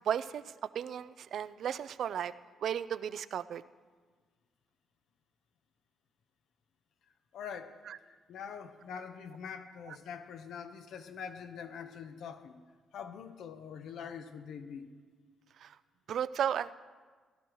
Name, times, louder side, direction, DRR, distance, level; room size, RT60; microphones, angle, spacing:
voice 1, 0.1-0.4 0.8-2.3 2.6-3.6 15.6-15.7 16.1-16.7, right 9 dB, 65° right, 15 dB, 0.3 m, -34 dB
voice 2, 7.3-7.8 8.1-12.6 12.9-15.0, left 7 dB, 75° left, 8 dB, 0.8 m, -44 dB
17.5 x 11.5 x 3.0 m, 1.5 s
cardioid pair, 90°, 0 cm